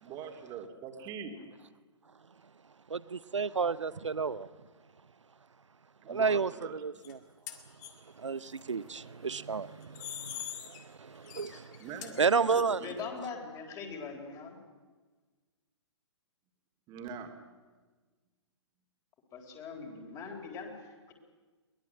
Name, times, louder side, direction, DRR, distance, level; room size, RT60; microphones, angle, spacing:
voice 1, 0.0-1.5 6.0-6.8 11.8-13.0 16.9-17.3, right 6 dB, 25° right, 2.8 m, -43 dB
voice 2, 2.9-4.5 6.1-7.2 8.1-11.9 12.2-12.9, right 5 dB, 80° right, 0.7 m, -32 dB
sound 1, 7.0-7.1 7.5-7.9 9.8-10.8 11.2-12.6, left 11 dB, 40° left, 2.6 m, -43 dB
voice 3, 12.8-14.6 19.3-21.1, left 5 dB, 25° left, 4.1 m, -42 dB
22.5 x 20.0 x 8.0 m
figure-of-eight pair, 120°, 15 cm